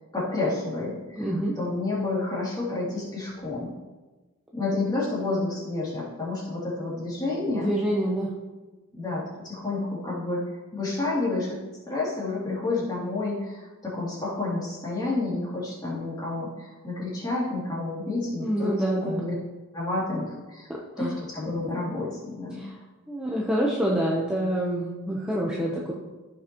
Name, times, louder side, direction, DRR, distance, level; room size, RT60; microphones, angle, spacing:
voice 1, 0.1-3.7 4.5-7.7 8.9-10.4 10.7-11.5 11.9-18.7 19.0-19.3 19.7-20.7 21.0-22.6, left 2 dB, 20° left, -7 dB, 2.8 m, -30 dB
voice 2, 1.2-1.5 7.5-8.3 18.4-19.2 20.7-21.2 22.5-22.7 23.1-25.9, right 1 dB, 5° right, -5 dB, 0.8 m, -27 dB
14.5 x 6.2 x 3.0 m, 1.2 s
head